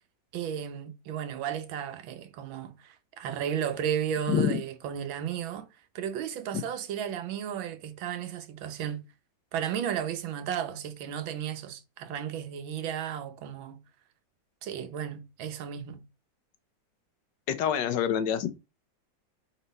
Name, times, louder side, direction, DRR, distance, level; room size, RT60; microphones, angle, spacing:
voice 1, 0.3-5.7 6.0-9.1 9.5-13.8 14.6-16.0, right 9 dB, 90° right, 1.6 m, -34 dB
voice 2, 4.3-4.6 17.5-18.5, left 9 dB, 70° left, 1.3 m, -26 dB
4.4 x 4.1 x 5.2 m
omnidirectional pair, 2.1 m